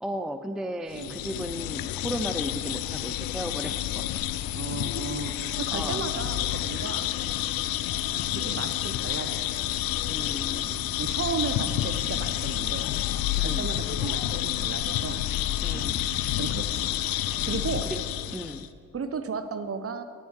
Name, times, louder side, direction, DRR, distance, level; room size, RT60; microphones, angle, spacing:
voice 1, 0.0-4.2 5.7-6.0 10.1-10.9 13.4-13.7 15.6-16.1 17.4-18.0 18.3-18.7, equal, ahead, 8 dB, 0.6 m, -35 dB
sound 1, 0.9-18.7, left 13 dB, 60° left, 0.6 m, -29 dB
voice 2, 4.5-7.1 8.3-9.4 9.7-9.8 11.0-12.9 13.4-15.2 15.7-16.0 16.4-16.9 17.5-17.9 18.9-20.0, right 5 dB, 35° right, 9 dB, 1.1 m, -34 dB
9.4 x 9.2 x 7.1 m, 2.1 s
figure-of-eight pair, 40°, 41 cm